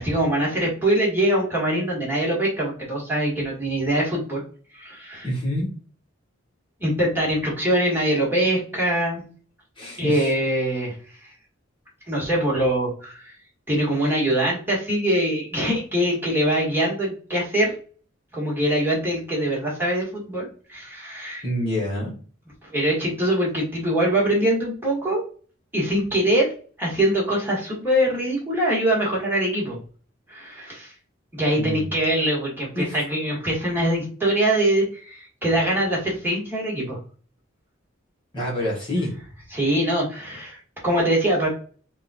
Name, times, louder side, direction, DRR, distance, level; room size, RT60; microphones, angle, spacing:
voice 1, 0.0-4.4 4.7-5.3 6.8-9.2 10.0-10.9 12.1-13.3 13.7-17.7 18.3-21.4 22.7-25.2 25.7-26.5 26.8-29.8 30.3-30.9 31.3-37.0 39.5-40.6 40.8-41.5, right 1 dB, 10° right, -4 dB, 1.6 m, -23 dB
voice 2, 5.2-5.7 9.8-10.3 21.4-22.1 31.5-31.9 32.7-33.0 38.3-39.1, left 1 dB, 25° left, -5 dB, 1.2 m, -27 dB
3.7 x 2.4 x 4.1 m, 0.41 s
head